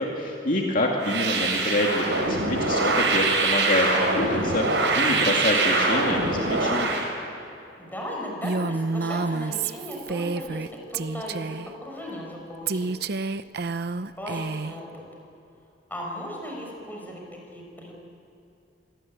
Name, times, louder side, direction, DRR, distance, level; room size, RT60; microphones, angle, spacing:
voice 1, 0.0-6.9, left 1 dB, 50° left, 0 dB, 2.4 m, -26 dB
sound 1, 1.0-7.1, right 3 dB, 80° right, 4.9 m, -24 dB
voice 2, 7.8-12.9 14.2-15.0 15.9-17.2 17.5-17.9, left 1 dB, 10° left, -1 dB, 6.0 m, -36 dB
Female speech woman speaking, 8.4-10.7 10.9-11.7 12.7-14.8, right 4 dB, 65° right, 0.7 m, -29 dB
26.5 x 19.0 x 9.0 m, 2.7 s
head